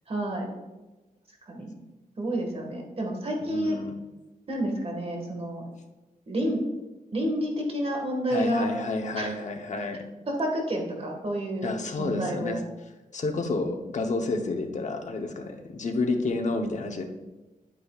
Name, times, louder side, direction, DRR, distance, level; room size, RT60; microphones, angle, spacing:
voice 1, 0.1-0.5 1.5-1.8 2.2-3.8 4.5-5.6 6.3-6.6 7.1-8.6 9.2-9.3 10.3-11.7 12.0-12.6, right 1 dB, 40° right, 1 dB, 1.7 m, -29 dB
voice 2, 3.4-3.9 8.3-10.0 11.6-12.6 13.1-17.1, left 3 dB, 55° left, 4 dB, 0.9 m, -30 dB
9.8 x 8.6 x 2.4 m, 1.1 s
wide cardioid pair, 120°, 15 cm